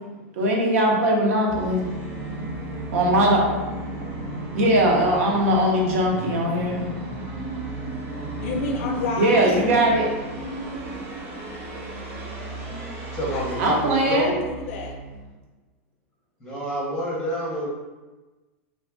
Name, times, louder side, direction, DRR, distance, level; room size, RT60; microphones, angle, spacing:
voice 1, 0.4-1.8 2.9-3.5 4.5-6.9 9.2-10.2 13.6-14.3, right 1 dB, 70° right, -1 dB, 0.9 m, -20 dB
Musical instrument, 1.5-15.2, right 1 dB, 35° right, 0.9 m, -34 dB
voice 2, 8.4-9.6 13.3-15.0, left 2 dB, 65° left, 4 dB, 0.5 m, -31 dB
voice 3, 13.1-14.4 16.4-17.7, equal, 5° left, -4 dB, 0.8 m, -27 dB
2.6 x 2.3 x 3.6 m, 1.2 s
supercardioid pair, 135°, 8 cm